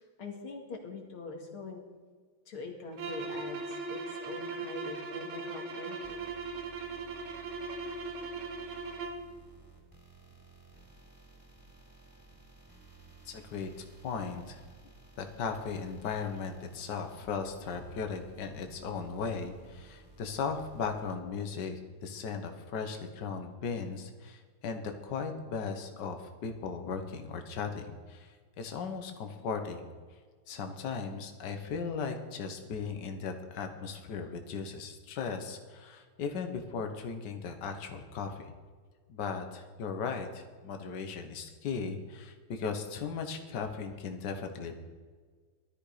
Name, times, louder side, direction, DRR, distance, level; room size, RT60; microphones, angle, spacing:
voice 1, 0.0-1.8 2.5-6.2, left 3 dB, 75° left, 2 dB, 2.9 m, -44 dB
sound 1, 2.9-9.3, right 3 dB, 75° right, 2.1 m, -39 dB
sound 2, 6.0-21.1, right 4 dB, 10° right, 3.3 m, -56 dB
voice 2, 13.3-13.7 14.0-14.6 15.2-29.9 30.5-38.5 39.1-44.8, left 5 dB, 55° left, 5 dB, 1.8 m, -37 dB
18.0 x 13.0 x 5.1 m, 1.5 s
omnidirectional pair, 2.3 m